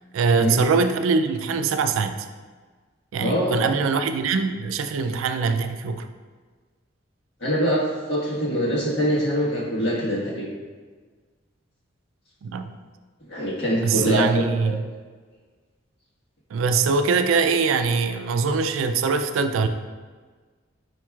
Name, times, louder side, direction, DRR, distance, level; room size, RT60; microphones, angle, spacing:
voice 1, 0.1-2.3 3.1-6.1 12.4-12.7 13.8-14.8 16.5-19.7, right 4 dB, 90° right, 8 dB, 0.3 m, -22 dB
voice 2, 3.2-3.6 7.4-10.4 13.3-14.7, equal, 65° left, -6 dB, 1.4 m, -24 dB
5.1 x 4.5 x 2.3 m, 1.4 s
head